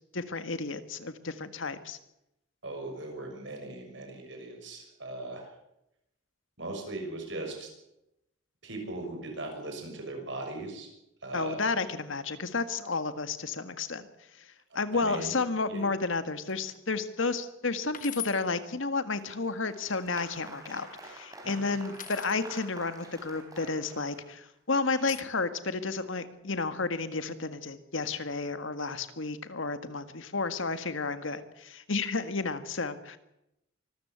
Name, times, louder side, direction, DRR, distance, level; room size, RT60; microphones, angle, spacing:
voice 1, 0.1-2.0 11.3-14.1 14.4-33.2, left 3 dB, 75° left, 11 dB, 1.7 m, -32 dB
voice 2, 2.6-5.5 6.6-7.7 8.6-10.9 11.2-11.6 14.7-15.4 15.7-15.8 21.4-21.8, right 2 dB, 60° right, 3 dB, 6.6 m, -39 dB
sound 1, 16.5-16.8 17.3-17.4 17.9-18.4 19.6-20.2 21.9-22.4 23.8-24.3 25.1-25.2, left 11 dB, 40° left, 1.3 m, -42 dB
Applause, 19.2-24.5, right 2 dB, 20° right, 4.2 m, -48 dB
24.5 x 14.5 x 8.2 m, 0.85 s
head